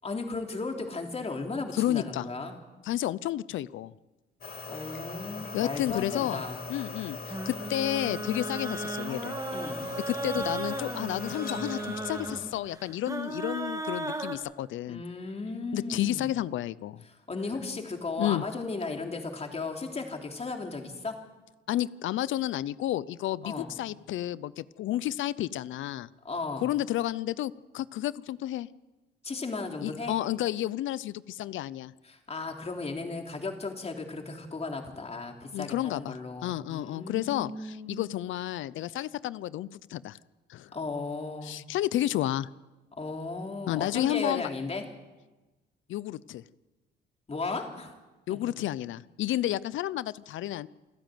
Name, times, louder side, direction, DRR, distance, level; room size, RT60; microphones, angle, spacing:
voice 1, 0.0-2.5 4.7-6.6 9.5-9.8 14.9-16.3 17.3-21.2 23.4-23.7 26.2-26.7 29.2-30.2 32.0-38.1 40.7-41.6 43.0-44.8 47.3-47.9 48.3-48.4, left 3 dB, 30° left, 3 dB, 3.4 m, -35 dB
voice 2, 1.7-2.3 2.8-3.9 5.5-6.4 6.7-9.4 10.1-15.0 15.7-17.0 18.2-18.4 21.7-26.1 26.6-28.7 29.8-31.9 35.5-36.2 36.4-40.2 40.5-40.7 41.4-42.5 43.7-44.4 45.9-46.4 48.3-50.7, left 13 dB, 75° left, 19 dB, 0.6 m, -31 dB
sound 1, 4.4-12.6, left 4 dB, 50° left, 2.8 m, -40 dB
sound 2, 7.3-14.4, right 2 dB, 15° right, 2.4 m, -36 dB
28.0 x 10.5 x 9.3 m, 1.2 s
cardioid pair, 90°, 20 cm